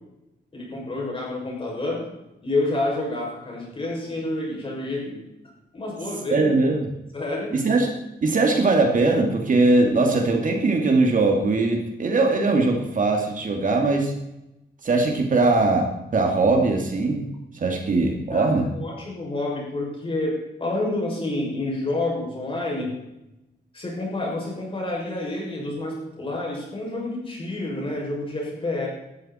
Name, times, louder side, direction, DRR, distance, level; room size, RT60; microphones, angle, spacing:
voice 1, 0.5-2.1 2.4-5.2 5.7-6.5 7.1-7.6 18.3-22.9 23.7-28.9, left 2 dB, 30° left, -2 dB, 6.7 m, -28 dB
voice 2, 6.3-6.8 7.5-7.9 8.2-14.1 14.8-15.9 16.1-17.3 17.5-18.7, right 3 dB, 50° right, 2 dB, 2.4 m, -20 dB
18.5 x 13.5 x 4.4 m, 0.91 s
wide cardioid pair, 150°, 18 cm